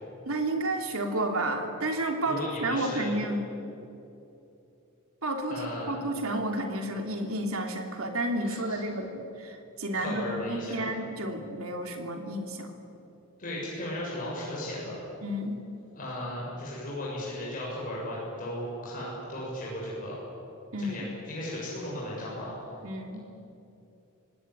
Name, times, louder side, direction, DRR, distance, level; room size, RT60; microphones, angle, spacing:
voice 1, 0.3-3.4 5.2-12.7 15.2-15.6 20.7-21.1 22.8-23.2, right 1 dB, 75° right, 4 dB, 2.9 m, -31 dB
voice 2, 2.3-3.2 5.5-5.9 8.4-8.8 9.9-10.8 13.4-15.0 15.9-20.2 20.8-22.5, left 1 dB, 40° left, -6 dB, 7.2 m, -36 dB
25.5 x 18.0 x 9.8 m, 2.8 s
head